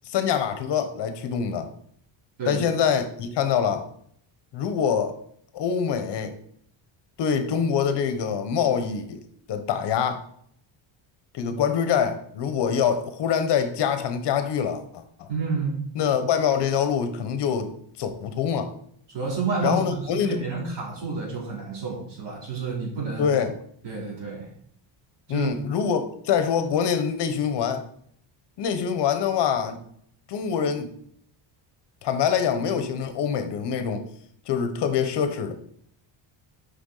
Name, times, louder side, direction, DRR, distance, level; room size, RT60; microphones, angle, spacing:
voice 1, 0.0-1.7 2.5-3.9 4.5-5.2 5.5-6.4 7.2-9.2 9.5-10.2 11.3-15.3 16.0-17.7 18.0-18.7 19.6-20.4 23.2-23.5 25.3-27.8 28.6-29.8 30.3-30.9 32.0-34.0 34.5-35.5, left 7 dB, 55° left, 9 dB, 0.9 m, -25 dB
voice 2, 15.3-15.8 19.1-23.3 23.8-24.5 25.3-25.5, right 4 dB, 60° right, -3 dB, 3.3 m, -29 dB
6.9 x 5.6 x 3.8 m, 0.65 s
cardioid pair, 165°, 48 cm